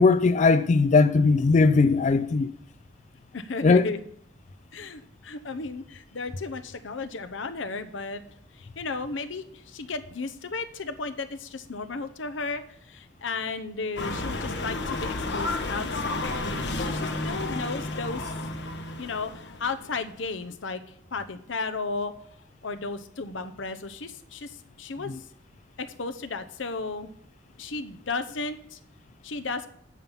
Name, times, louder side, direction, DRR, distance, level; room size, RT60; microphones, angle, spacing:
voice 1, 0.0-2.5 3.6-3.8, left 4 dB, 40° left, 0.3 m, -19 dB
voice 2, 3.3-4.0 4.7-8.2 8.5-16.3 16.8-18.2 19.0-20.8 21.1-22.1 22.6-25.2 25.8-27.1 27.6-28.8 29.2-29.7, left 3 dB, 90° left, 0.9 m, -34 dB
sound 1, 14.0-20.1, left 2 dB, 65° left, 1.1 m, -31 dB
9.3 x 5.8 x 7.1 m
head